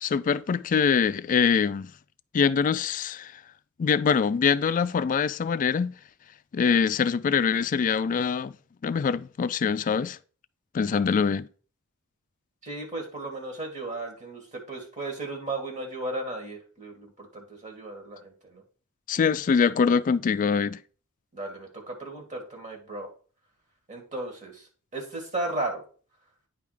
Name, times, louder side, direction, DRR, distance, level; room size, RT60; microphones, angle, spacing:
voice 1, 0.0-1.9 2.3-3.3 3.8-5.9 6.5-8.5 8.8-10.2 10.7-11.5 19.1-20.8, left 6 dB, 40° left, 0.3 m, -24 dB
voice 2, 12.6-18.6 21.3-23.1 23.9-24.6 24.9-25.8, right 2 dB, 35° right, 2.0 m, -35 dB
9.4 x 3.5 x 5.0 m
head